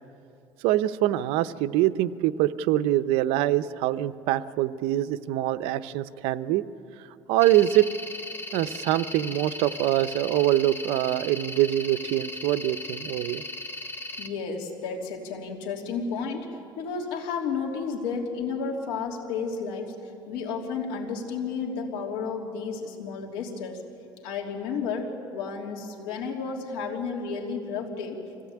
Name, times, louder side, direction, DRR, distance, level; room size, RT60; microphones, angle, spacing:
voice 1, 0.6-6.6 7.3-7.9 8.5-13.4, right 14 dB, 80° right, 12 dB, 0.7 m, -24 dB
sound 1, 7.4-14.3, left 1 dB, 20° left, 1.4 m, -37 dB
voice 2, 14.2-16.5 16.8-20.0 20.3-23.8 24.2-28.2, left 5 dB, 90° left, 1 dB, 3.3 m, -32 dB
25.5 x 17.0 x 8.6 m, 2.6 s
cardioid pair, 135°, 10 cm